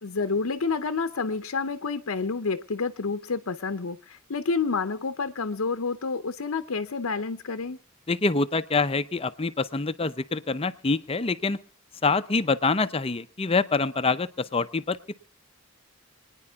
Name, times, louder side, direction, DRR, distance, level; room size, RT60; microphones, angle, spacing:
voice 1, 0.0-7.8, left 4 dB, 75° left, 9 dB, 0.7 m, -29 dB
voice 2, 8.1-11.6 12.0-15.1, left 3 dB, 25° left, 13 dB, 0.6 m, -26 dB
26.0 x 9.9 x 3.5 m, 0.35 s
head